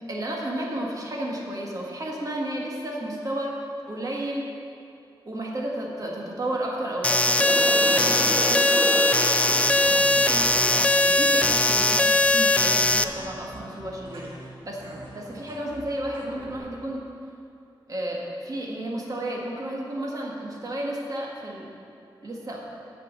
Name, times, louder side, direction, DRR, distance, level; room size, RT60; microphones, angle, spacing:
voice 1, 0.1-3.6 3.9-4.5 5.2-9.0 9.5-14.8 15.1-17.0 17.9-21.7 22.2-22.6, right 1 dB, 45° right, -2 dB, 1.6 m, -32 dB
sound 1, 7.0-13.0, left 2 dB, 15° left, 0.3 m, -20 dB
sound 2, 7.4-10.7, equal, 25° right, 2.7 m, -31 dB
sound 3, 9.5-16.6, right 1 dB, 80° right, 1.6 m, -43 dB
8.4 x 6.0 x 7.4 m, 2.6 s
wide cardioid pair, 110°, 9 cm